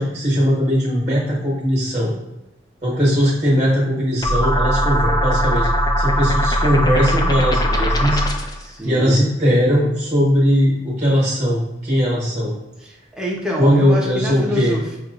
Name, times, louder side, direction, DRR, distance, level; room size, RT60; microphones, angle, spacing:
voice 1, 0.0-2.1 2.8-5.7 6.0-8.2 8.8-12.6 13.6-14.7, equal, 35° right, -6 dB, 1.4 m, -19 dB
sound 1, 4.2-8.6, equal, 20° left, 0.3 m, -19 dB
voice 2, 8.6-9.2 12.8-15.0, equal, 5° right, -3 dB, 0.8 m, -27 dB
6.1 x 2.3 x 2.5 m, 1.0 s
head